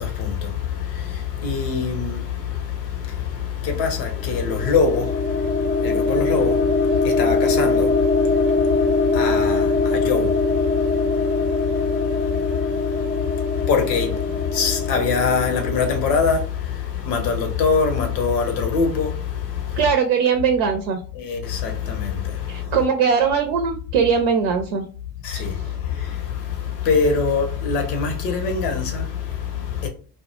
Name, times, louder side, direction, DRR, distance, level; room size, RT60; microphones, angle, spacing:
voice 1, 0.0-19.9 21.1-22.8 25.2-29.9, left 6 dB, 80° left, 0.8 m, -24 dB
sound 1, 4.1-16.0, left 3 dB, 15° left, 0.4 m, -22 dB
voice 2, 19.8-21.0 22.5-24.9 25.3-25.4, right 6 dB, 70° right, 0.6 m, -20 dB
2.1 x 2.0 x 2.9 m
hypercardioid pair, 55°, 50 cm